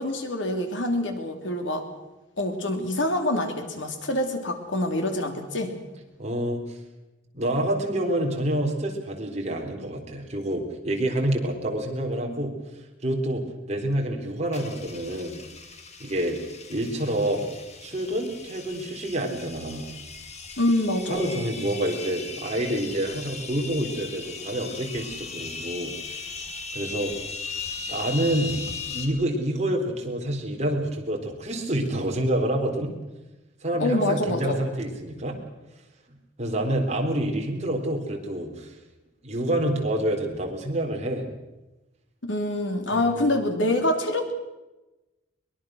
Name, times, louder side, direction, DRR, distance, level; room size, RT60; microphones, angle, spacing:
voice 1, 0.0-1.8 2.4-5.7 20.6-21.4 33.8-34.6 42.2-44.3, left 1 dB, 75° left, 5 dB, 3.1 m, -26 dB
voice 2, 6.2-6.8 7.3-12.6 13.0-15.4 16.0-16.4 16.7-17.5 17.8-19.9 21.1-26.4 26.7-27.1 27.9-28.6 28.9-32.9 33.6-35.4 36.4-38.7 39.2-41.3 42.9-43.0, right 1 dB, 35° right, 1 dB, 3.9 m, -27 dB
sound 1, 14.5-29.1, left 4 dB, 35° left, 2.2 m, -38 dB
23.0 x 22.0 x 6.4 m, 1.1 s
head